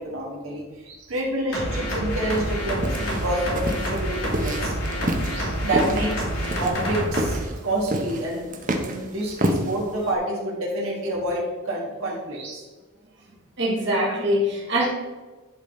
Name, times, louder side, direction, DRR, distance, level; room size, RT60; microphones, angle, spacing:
voice 1, 0.0-4.7 5.6-12.6, right 1 dB, 75° right, -3 dB, 1.7 m, -28 dB
sound 1, 1.5-7.4, equal, 80° left, 2.3 m, -28 dB
sound 2, 2.3-10.1, right 1 dB, 40° right, 0.8 m, -29 dB
voice 2, 13.6-14.9, equal, 55° right, -3 dB, 1.8 m, -25 dB
10.5 x 3.8 x 4.2 m, 1.3 s
head